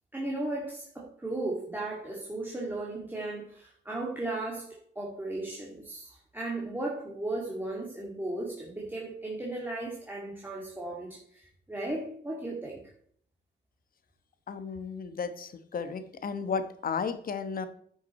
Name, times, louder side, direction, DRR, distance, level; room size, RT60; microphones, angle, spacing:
voice 1, 0.1-12.9, right 2 dB, 10° right, -3 dB, 2.2 m, -36 dB
voice 2, 14.5-17.7, left 5 dB, 45° left, 11 dB, 1.1 m, -34 dB
9.7 x 6.3 x 4.2 m, 0.62 s
cardioid pair, 90°, 20 cm